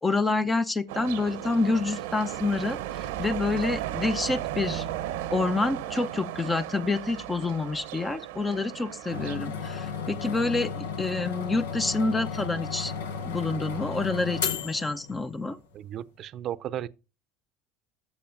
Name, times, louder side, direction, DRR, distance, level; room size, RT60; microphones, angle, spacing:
voice 1, 0.0-4.8 5.3-12.9 13.2-15.6, left 3 dB, 20° left, 0.6 m, -28 dB
sound 1, 0.9-9.4, right 13 dB, 80° right, 0.8 m, -35 dB
sound 2, 9.1-15.6, left 6 dB, 90° left, 1.0 m, -34 dB
voice 2, 15.7-16.9, right 11 dB, 50° right, 0.6 m, -34 dB
13.5 x 7.0 x 2.6 m
hypercardioid pair, 85°, 0 cm